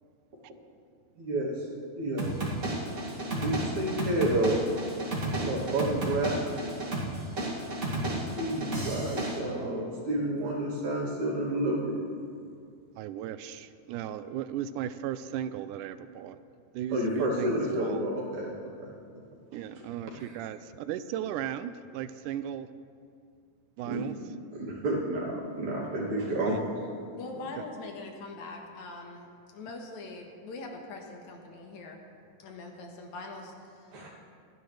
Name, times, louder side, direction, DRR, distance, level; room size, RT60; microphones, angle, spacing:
voice 1, 1.2-1.7 2.0-2.3 3.3-4.6 5.4-6.4 8.2-12.0 16.9-18.5 18.8-18.9 20.2-20.4 23.8-24.1 24.5-26.6 33.9-34.2, right 1 dB, 70° right, -5 dB, 3.9 m, -30 dB
sound 1, 2.2-9.4, right 1 dB, 30° right, 2.4 m, -33 dB
voice 2, 13.0-16.4 16.7-18.0 19.5-22.7 23.8-24.2 27.6-27.7, right 10 dB, 90° right, 13 dB, 2.1 m, -36 dB
voice 3, 27.1-32.0 32.4-33.9, left 3 dB, 70° left, 2 dB, 2.7 m, -42 dB
27.0 x 10.5 x 3.3 m, 2.3 s
omnidirectional pair, 3.5 m